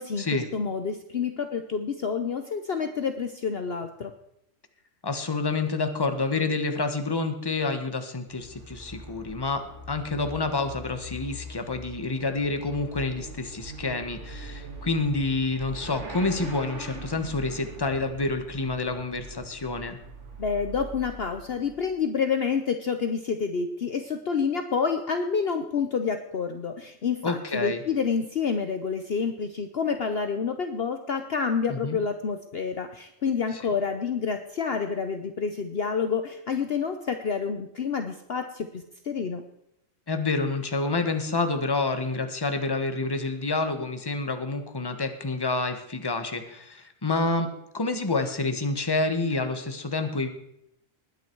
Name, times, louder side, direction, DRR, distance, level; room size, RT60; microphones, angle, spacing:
voice 1, 0.0-4.1 20.4-39.4, left 6 dB, 50° left, 7 dB, 1.0 m, -28 dB
voice 2, 5.0-20.0 27.2-27.8 31.7-32.0 33.5-33.6 40.1-50.3, left 3 dB, 20° left, 8 dB, 1.2 m, -28 dB
Motorcycle / Accelerating revving vroom, 8.2-22.0, right 2 dB, 60° right, 2.6 m, -42 dB
20.0 x 9.7 x 4.6 m, 0.79 s
omnidirectional pair, 1.4 m